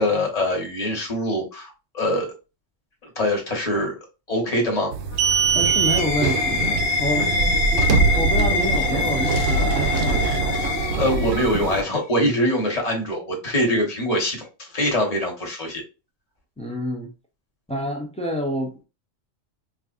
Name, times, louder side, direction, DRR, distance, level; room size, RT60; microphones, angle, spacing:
voice 1, 0.0-2.3 3.1-4.0 4.3-4.9 11.0-15.8, left 1 dB, 30° left, 1.1 m, -23 dB
sound 1, 4.9-11.8, right 5 dB, 75° right, 0.9 m, -22 dB
sound 2, 5.1-11.6, left 4 dB, 85° left, 1.1 m, -25 dB
voice 2, 5.5-7.3 7.7-10.3 16.6-17.1 17.7-18.8, left 1 dB, 10° left, 0.3 m, -28 dB
4.4 x 2.4 x 2.4 m
omnidirectional pair, 1.4 m